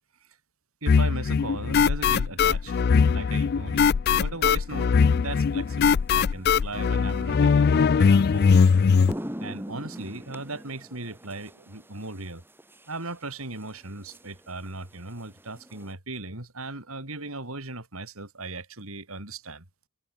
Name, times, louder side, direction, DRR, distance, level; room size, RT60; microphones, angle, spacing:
voice 1, 0.8-8.6 9.4-12.4 12.9-19.6, right 2 dB, 70° right, 4.3 m, -37 dB
sound 1, 0.9-9.1, left 6 dB, 45° left, 0.3 m, -21 dB
sound 2, 5.3-5.6 7.7-7.8 8.3-8.5 8.8-15.9, equal, 10° right, 4.2 m, -42 dB
head